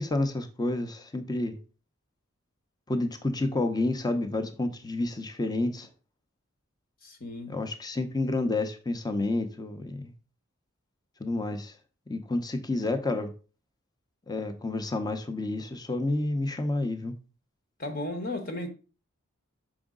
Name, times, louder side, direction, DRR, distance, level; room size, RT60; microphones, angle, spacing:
voice 1, 0.0-1.6 2.9-5.9 7.5-10.1 11.2-11.7 12.1-13.3 14.3-17.2, left 2 dB, 20° left, 0.7 m, -29 dB
voice 2, 7.0-7.6 17.8-18.7, left 1 dB, 45° left, 1.1 m, -35 dB
6.1 x 5.0 x 3.7 m
head